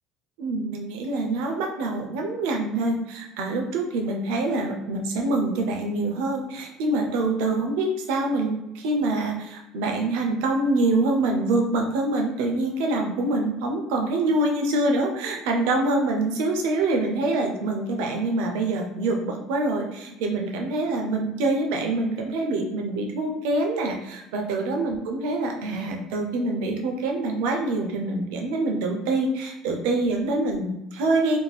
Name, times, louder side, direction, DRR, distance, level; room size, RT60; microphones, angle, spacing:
voice 1, 0.4-31.4, right 2 dB, 80° right, 2 dB, 0.6 m, -25 dB
2.6 x 2.1 x 3.2 m, 0.93 s
supercardioid pair, 85°, 0 cm